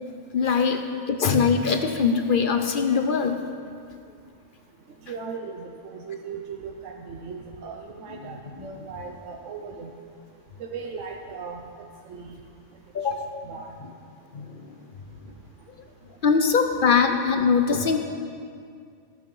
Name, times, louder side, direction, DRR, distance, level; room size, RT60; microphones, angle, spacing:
voice 1, 0.3-0.8 1.1-3.4 8.6-8.7 12.9-13.3 14.3-14.8 16.2-18.0, left 5 dB, 50° left, 6 dB, 0.8 m, -22 dB
voice 2, 5.0-9.9 10.6-11.6 12.1-12.4 13.4-13.8, right 5 dB, 90° right, 2 dB, 1.1 m, -37 dB
15.0 x 5.9 x 5.5 m, 2.2 s
omnidirectional pair, 1.2 m